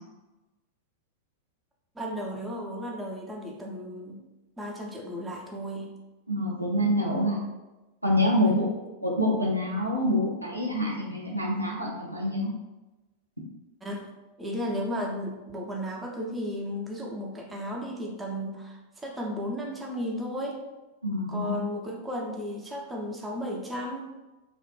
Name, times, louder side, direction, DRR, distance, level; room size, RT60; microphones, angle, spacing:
voice 1, 2.0-4.2 4.6-5.9 8.4-8.8 13.8-14.1 14.4-20.6 21.3-24.1, equal, 10° right, -1 dB, 0.5 m, -34 dB
voice 2, 6.3-7.4 8.0-8.7 9.0-12.5 21.0-21.6, left 1 dB, 90° right, -3 dB, 0.5 m, -26 dB
2.3 x 2.1 x 3.0 m, 1.1 s
figure-of-eight pair, 90°, 0 cm